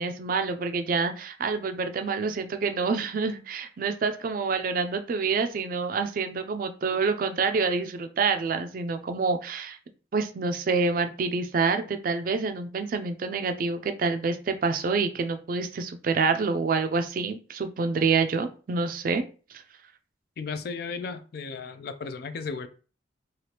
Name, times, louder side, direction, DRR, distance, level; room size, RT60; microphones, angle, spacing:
voice 1, 0.0-9.8 10.1-19.2, right 4 dB, 50° right, 8 dB, 0.4 m, -27 dB
voice 2, 20.4-22.7, left 5 dB, 55° left, 10 dB, 0.3 m, -35 dB
3.2 x 2.4 x 2.8 m, 0.37 s
head